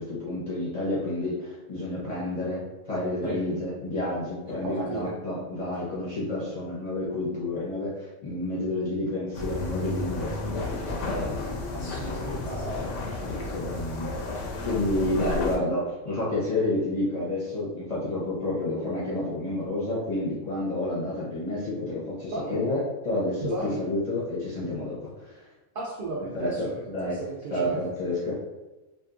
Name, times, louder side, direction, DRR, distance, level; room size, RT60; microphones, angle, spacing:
voice 1, 0.0-2.6 2.9-25.5 26.3-27.2 27.5-28.4, left 1 dB, 40° left, -8 dB, 0.7 m, -30 dB
voice 2, 4.6-5.1 11.7-12.8 22.3-22.6 23.4-23.8 25.7-27.8, right 3 dB, 70° right, -4 dB, 0.5 m, -35 dB
sound 1, 9.3-15.6, left 2 dB, 70° left, 0.9 m, -32 dB
2.8 x 2.3 x 2.4 m, 1.1 s
omnidirectional pair, 1.4 m